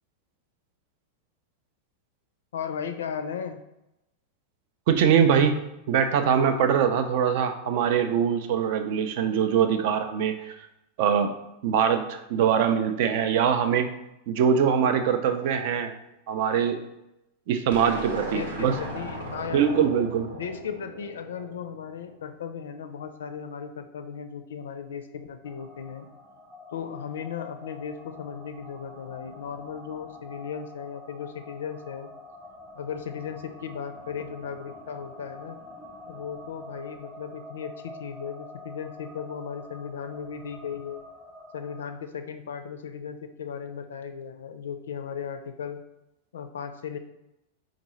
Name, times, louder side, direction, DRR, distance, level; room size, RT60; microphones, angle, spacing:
voice 1, 2.5-3.6 18.3-19.9 20.3-26.1 26.7-32.1 32.7-35.6 36.1-41.0 41.5-45.8 46.3-47.0, left 7 dB, 65° left, 8 dB, 0.4 m, -36 dB
voice 2, 4.9-10.5 11.0-11.3 11.6-13.9 14.3-15.9 16.3-16.8 17.5-18.7 19.5-20.3, right 7 dB, 50° right, 8 dB, 0.4 m, -23 dB
sound 1, 17.7-22.1, right 2 dB, 70° right, 0.9 m, -37 dB
sound 2, 25.4-41.8, left 2 dB, ahead, 0.8 m, -46 dB
4.4 x 3.8 x 3.0 m, 0.89 s
figure-of-eight pair, 90°, 0 cm